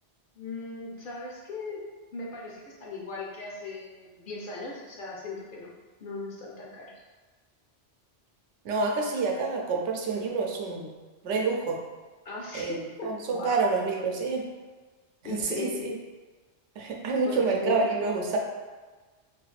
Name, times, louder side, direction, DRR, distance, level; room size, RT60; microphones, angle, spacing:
voice 1, 0.4-1.8 2.1-5.7 6.0-6.9 12.2-13.6 15.2-16.0 17.2-17.9, left 3 dB, 55° left, -3 dB, 0.7 m, -38 dB
voice 2, 8.6-10.9 11.2-11.8 12.5-14.4 15.3-15.9 16.8-18.4, right 4 dB, 85° right, 0 dB, 0.9 m, -28 dB
3.3 x 2.4 x 3.2 m, 1.3 s
omnidirectional pair, 1.2 m